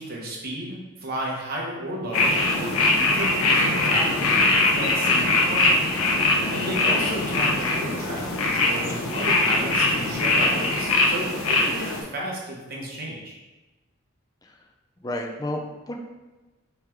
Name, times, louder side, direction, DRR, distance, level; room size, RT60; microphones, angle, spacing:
voice 1, 0.0-5.9 6.2-6.3 6.5-13.3, right 1 dB, 45° right, -3 dB, 1.0 m, -33 dB
sound 1, 2.1-12.0, left 2 dB, 85° left, 0.7 m, -22 dB
voice 2, 6.7-7.0 14.4-14.6 15.0-16.0, left 1 dB, 20° left, 2 dB, 0.4 m, -32 dB
4.5 x 3.3 x 3.5 m, 1.2 s
head